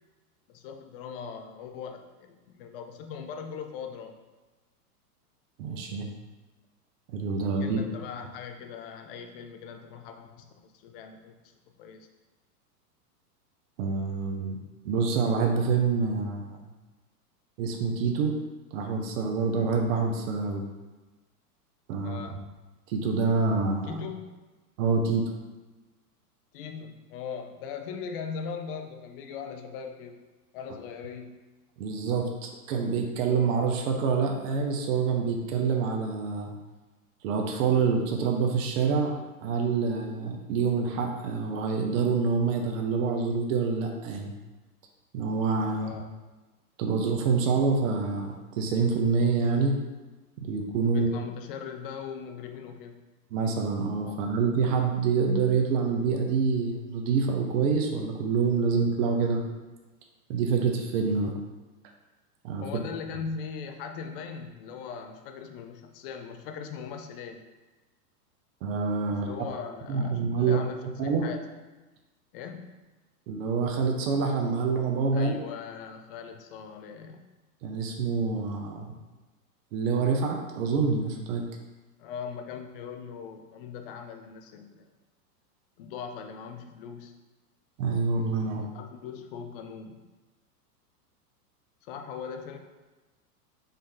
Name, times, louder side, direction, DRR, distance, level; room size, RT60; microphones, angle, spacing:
voice 1, 0.5-4.2 7.6-12.1 22.0-22.5 23.8-24.4 26.5-30.2 30.5-31.4 45.8-46.2 50.9-53.0 54.1-54.2 62.6-67.4 69.0-71.5 72.3-72.8 75.1-77.2 82.0-84.9 85.8-87.1 88.5-90.0 91.8-92.6, left 6 dB, 40° left, 5 dB, 0.5 m, -40 dB
voice 2, 5.6-6.1 7.1-7.8 13.8-14.6 14.8-16.6 17.6-18.3 18.7-20.6 21.9-22.4 22.9-24.0 24.8-25.3 31.8-36.5 37.2-39.1 39.4-44.3 45.1-45.9 46.8-49.8 50.4-51.1 53.3-59.4 60.3-61.3 62.4-62.7 68.6-69.3 69.9-70.6 71.0-71.2 73.3-75.3 77.6-78.9 79.7-81.4 87.8-88.6, right 5 dB, 55° right, 2 dB, 0.8 m, -26 dB
5.3 x 2.6 x 3.7 m, 1.2 s
hypercardioid pair, 130°, 47 cm